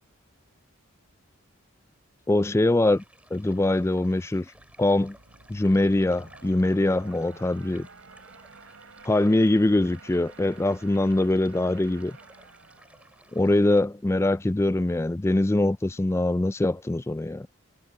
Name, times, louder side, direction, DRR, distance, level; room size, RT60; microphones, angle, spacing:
voice 1, 2.3-3.0 3.3-4.5 4.8-5.2 5.5-7.9 9.0-12.2 13.3-17.5, left 1 dB, 15° left, 0.3 m, -23 dB
sound 1, 2.8-13.8, right 1 dB, 5° right, 4.2 m, -56 dB
sound 2, 4.5-14.1, right 4 dB, 80° right, 3.4 m, -51 dB
head